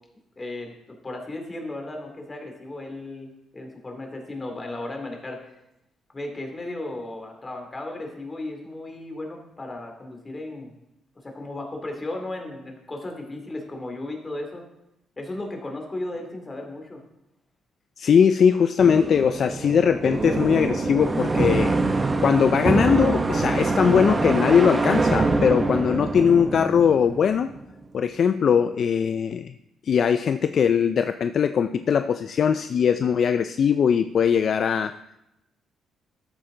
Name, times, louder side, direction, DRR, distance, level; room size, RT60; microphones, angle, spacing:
voice 1, 0.4-5.4 6.1-10.7 11.2-14.6 15.2-17.0, left 2 dB, 25° left, 2 dB, 2.6 m, -35 dB
voice 2, 18.0-21.8 22.2-27.5 27.9-29.5 29.8-35.0, left 7 dB, 55° left, 11 dB, 0.4 m, -20 dB
sound 1, 18.8-27.6, right 3 dB, 25° right, 0.9 m, -24 dB
13.0 x 8.6 x 3.9 m, 0.87 s
cardioid pair, 90°, 0 cm